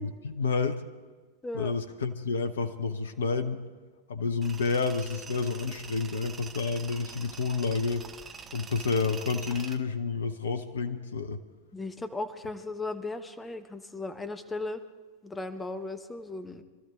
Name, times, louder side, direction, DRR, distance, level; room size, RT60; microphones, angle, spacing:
voice 1, 0.2-0.8 1.5-3.6 4.1-8.1 8.5-11.4, left 4 dB, 65° left, 11 dB, 0.8 m, -29 dB
voice 2, 1.4-1.8 11.7-14.8 15.2-16.6, left 2 dB, 10° left, 10 dB, 1.1 m, -36 dB
Tools, 4.4-9.8, right 6 dB, 20° right, 0.9 m, -45 dB
24.5 x 13.0 x 3.8 m, 1.4 s
figure-of-eight pair, 90°, 0 cm